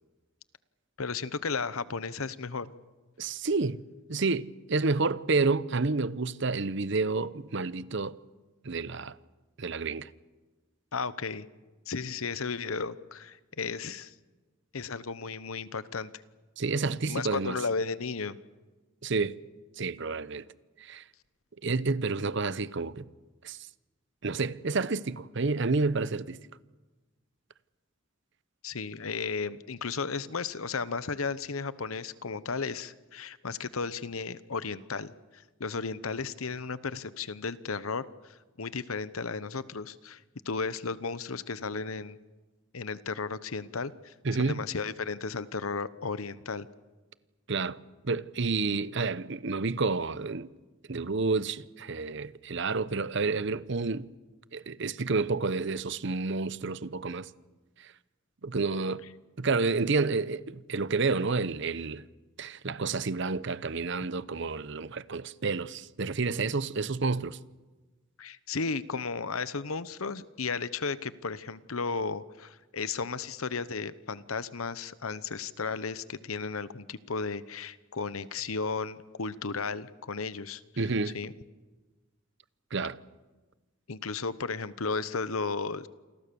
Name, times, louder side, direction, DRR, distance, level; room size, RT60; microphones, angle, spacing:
voice 1, 1.0-2.7 10.9-11.5 11.9-14.1 14.7-16.1 17.1-18.4 28.6-38.0 38.6-40.2 40.4-42.2 42.7-44.1 44.4-46.7 68.2-80.8 81.1-81.3 83.9-85.9, left 4 dB, 90° left, 1.0 m, -34 dB
voice 2, 3.2-3.8 4.1-8.2 8.6-9.2 9.6-10.1 16.6-17.6 19.0-19.4 19.8-20.4 20.8-21.0 21.6-23.1 23.4-23.6 24.2-26.4 44.2-44.6 47.5-50.5 50.9-54.1 54.5-57.3 57.8-57.9 58.4-59.1 59.4-62.0 62.4-67.4 80.8-81.2 82.7-83.0, right 4 dB, 60° right, 0.8 m, -29 dB
28.5 x 22.0 x 7.0 m
head